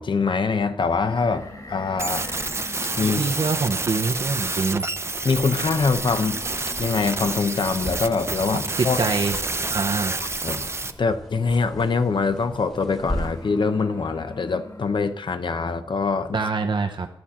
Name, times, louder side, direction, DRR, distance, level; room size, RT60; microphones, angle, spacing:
voice 1, 0.0-2.3 3.0-3.2 5.2-6.4 6.8-9.1 10.4-16.4, left 4 dB, 60° left, 10 dB, 0.7 m, -24 dB
sound 1, 0.8-15.3, left 2 dB, 40° left, 2.5 m, -44 dB
sound 2, 2.0-10.9, right 3 dB, 30° right, 0.5 m, -28 dB
voice 2, 3.0-4.9 8.8-9.4 9.7-10.1 16.3-17.1, right 4 dB, 60° right, 3 dB, 0.8 m, -25 dB
sound 3, 5.5-13.6, equal, 5° left, 1.3 m, -38 dB
12.0 x 4.3 x 7.5 m, 0.76 s
wide cardioid pair, 110°, 9 cm